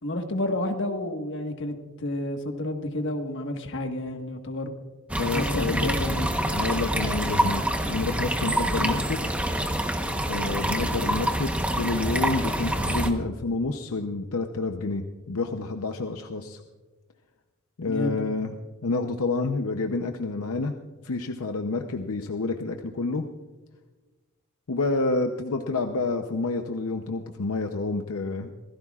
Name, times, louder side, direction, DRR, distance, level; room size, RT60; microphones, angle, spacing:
voice 1, 0.0-4.7 5.3-6.3 8.8-9.0 17.8-18.2, left 1 dB, 55° left, 4 dB, 1.5 m, -30 dB
sound 1, 5.1-13.1, right 1 dB, 5° right, 1.0 m, -26 dB
voice 2, 5.2-5.9 6.5-9.2 10.3-16.6 17.8-18.5 18.8-20.7 21.0-23.2 24.7-28.5, left 3 dB, 80° left, 5 dB, 0.8 m, -29 dB
25.5 x 16.5 x 2.4 m, 1.3 s
head